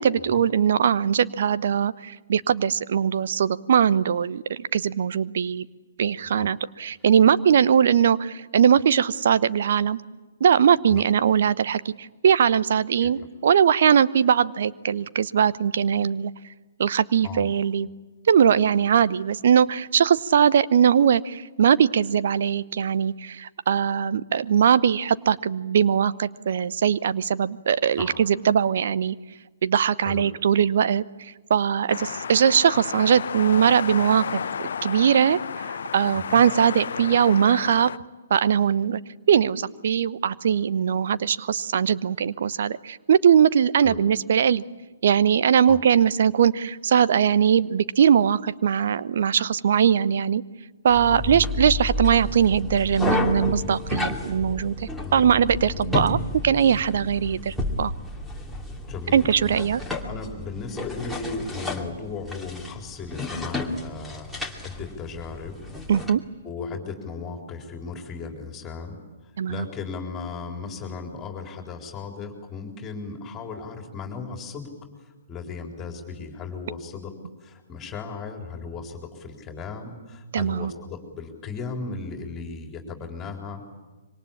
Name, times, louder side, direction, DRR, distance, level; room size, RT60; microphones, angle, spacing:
voice 1, 0.0-5.7 6.0-10.0 10.4-16.3 16.8-17.9 18.3-29.2 29.6-37.9 38.3-39.0 39.3-44.6 45.0-50.4 50.8-56.2 56.4-57.9 59.1-59.8 65.9-66.2 69.4-69.7 80.3-80.7, right 8 dB, 50° right, 16 dB, 0.8 m, -21 dB
sound 1, 31.9-38.0, left 7 dB, 55° left, 0.9 m, -32 dB
sound 2, 50.9-66.1, left 2 dB, ahead, 2.6 m, -31 dB
voice 2, 54.9-55.4 55.7-56.0 58.9-59.6 60.0-65.6 66.4-69.0 69.2-74.7 75.0-77.1 77.4-83.7, left 4 dB, 20° left, 3 dB, 3.9 m, -36 dB
26.0 x 24.5 x 8.7 m, 1.2 s
figure-of-eight pair, 125°, 0 cm